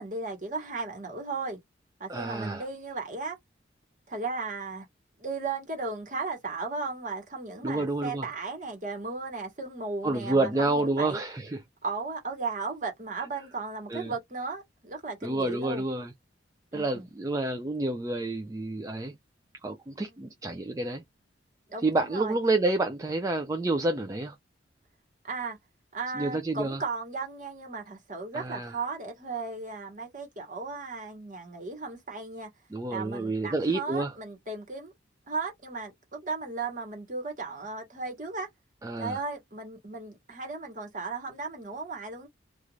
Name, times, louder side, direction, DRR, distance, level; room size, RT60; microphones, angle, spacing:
voice 1, 0.0-1.6 2.0-3.4 4.1-4.9 5.2-11.2 11.8-15.8 16.7-17.1 20.1-20.2 21.7-22.3 25.2-25.6 25.9-32.5 32.9-34.9 35.3-38.5 39.0-42.3, right 3 dB, 40° right, 1.2 m, -36 dB
voice 2, 2.1-2.7 7.6-8.3 10.0-11.6 13.9-14.1 15.2-16.1 16.7-19.2 19.6-21.0 21.8-24.3 26.1-26.8 28.3-28.7 32.7-34.1 38.8-39.2, right 2 dB, 15° right, 0.3 m, -29 dB
2.5 x 2.4 x 3.0 m
head